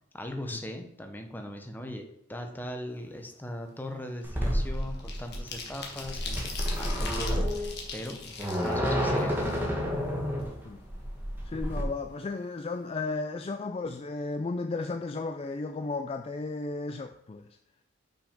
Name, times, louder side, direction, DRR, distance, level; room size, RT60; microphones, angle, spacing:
voice 1, 0.1-8.2 8.6-9.4, left 1 dB, 10° left, 4 dB, 0.8 m, -39 dB
sound 1, 3.0-3.3 3.6-10.0 10.4-10.5 10.8-11.8 12.1-12.2 12.5-12.8, left 5 dB, 55° left, 1.5 m, -42 dB
sound 2, 4.2-11.8, equal, 10° right, 1.6 m, -30 dB
voice 2, 11.4-17.6, left 3 dB, 30° left, 7 dB, 0.3 m, -34 dB
6.0 x 5.1 x 5.1 m, 0.79 s
head